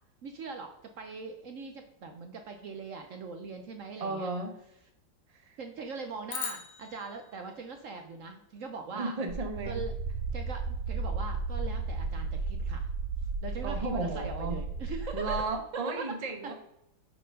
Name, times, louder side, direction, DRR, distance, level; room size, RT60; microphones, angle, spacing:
voice 1, 0.2-0.7 1.0-4.3 5.6-9.1 9.7-9.9 10.3-12.9 13.4-15.4 16.0-16.1 16.4-16.5, right 4 dB, 65° right, 5 dB, 0.8 m, -41 dB
voice 2, 4.0-4.5 5.4-5.6 8.9-9.8 13.6-14.6 15.1-16.5, right 3 dB, 30° right, 4 dB, 0.7 m, -34 dB
sound 1, 6.3-8.7, left 7 dB, 85° left, 1.7 m, -42 dB
sound 2, 9.3-15.4, right 3 dB, 90° right, 1.4 m, -34 dB
7.5 x 4.5 x 5.1 m, 0.80 s
omnidirectional pair, 2.0 m